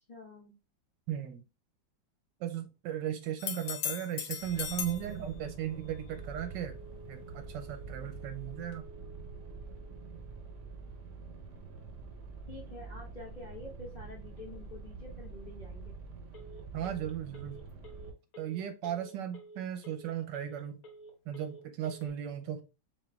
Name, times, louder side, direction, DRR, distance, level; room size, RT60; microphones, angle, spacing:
voice 1, 0.1-0.5 11.6-11.7 12.5-15.9, left 2 dB, 35° left, 0.7 m, -48 dB
voice 2, 1.1-1.4 2.4-6.7 7.1-8.8 16.7-17.6 18.4-20.8 21.3-22.6, right 10 dB, 75° right, 1.2 m, -36 dB
sound 1, 3.4-5.1 8.7-8.8, left 10 dB, 75° left, 1.2 m, -37 dB
sound 2, 4.4-18.1, right 4 dB, 55° right, 0.8 m, -46 dB
Telephone, 6.1-22.1, right 2 dB, 50° left, 1.4 m, -54 dB
4.3 x 4.3 x 2.3 m
omnidirectional pair, 2.1 m